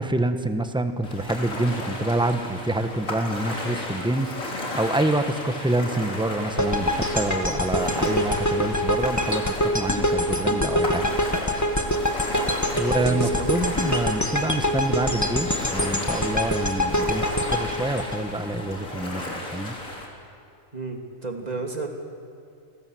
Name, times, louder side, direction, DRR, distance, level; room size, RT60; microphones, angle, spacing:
voice 1, 0.0-4.3 4.7-11.1 12.8-17.2 17.5-19.2 19.5-19.7, right 2 dB, 5° right, 8 dB, 1.3 m, -26 dB
Ocean, 1.0-20.1, left 1 dB, 70° left, 4.1 m, -34 dB
sound 1, 6.6-18.8, equal, 10° left, 1.8 m, -25 dB
voice 2, 12.5-13.5 20.7-21.9, right 3 dB, 30° right, 3 dB, 2.9 m, -33 dB
29.0 x 22.0 x 7.9 m, 2.5 s
omnidirectional pair, 1.4 m